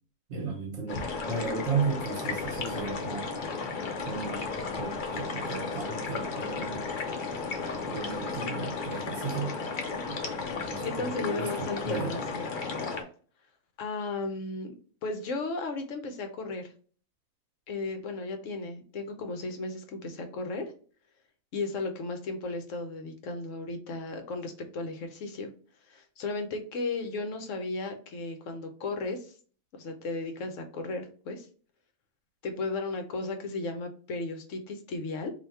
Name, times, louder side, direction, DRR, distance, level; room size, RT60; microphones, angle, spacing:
voice 1, 0.3-3.3 4.1-4.4 4.8-6.8 7.9-9.6 10.1-10.2 10.6-12.1, right 4 dB, 60° right, 3 dB, 1.2 m, -34 dB
sound 1, 0.9-13.0, left 4 dB, 45° left, 0.7 m, -34 dB
voice 2, 10.8-12.5 13.0-13.1 13.8-14.7 15.0-16.7 17.7-20.6 21.5-25.5 25.9-29.3 29.8-31.5 32.4-35.3, left 3 dB, 70° left, 6 dB, 1.0 m, -35 dB
3.4 x 2.7 x 4.1 m, 0.42 s
omnidirectional pair, 1.4 m